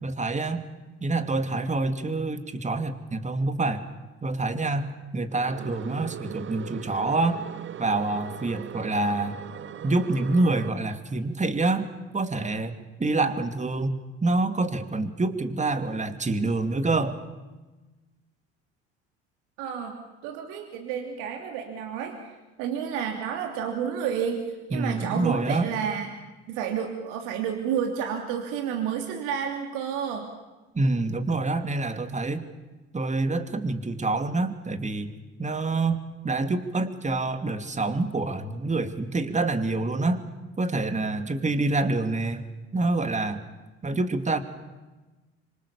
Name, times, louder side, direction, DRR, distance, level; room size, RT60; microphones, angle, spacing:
voice 1, 0.0-0.7 1.0-3.8 4.2-7.4 7.8-9.4 9.8-11.9 12.1-17.2 24.7-25.7 30.7-32.5 32.9-35.1 35.4-40.2 40.6-42.5 42.7-43.4 43.8-44.4, right 2 dB, 20° right, 8 dB, 2.7 m, -27 dB
sound 1, 5.3-10.7, right 9 dB, 35° right, 1.0 m, -39 dB
voice 2, 19.6-26.1 26.5-30.3, right 8 dB, 75° right, 3 dB, 3.0 m, -30 dB
26.0 x 25.5 x 7.2 m, 1.2 s
hypercardioid pair, 70°, 32 cm